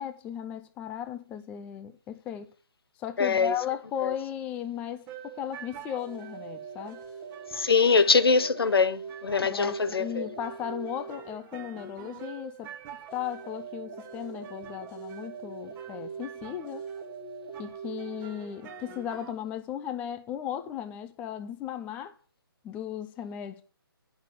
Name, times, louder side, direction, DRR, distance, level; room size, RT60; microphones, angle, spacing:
voice 1, 0.0-2.5 3.0-7.0 9.4-12.7 13.1-16.8 17.6-22.2 22.6-23.6, left 9 dB, 10° left, 0.4 m, -36 dB
voice 2, 3.2-3.5 4.0-4.1 7.5-10.3, left 5 dB, 75° left, 0.8 m, -23 dB
sound 1, 5.1-19.3, right 6 dB, 15° right, 0.9 m, -42 dB
8.7 x 5.7 x 7.5 m
figure-of-eight pair, 145°, 13 cm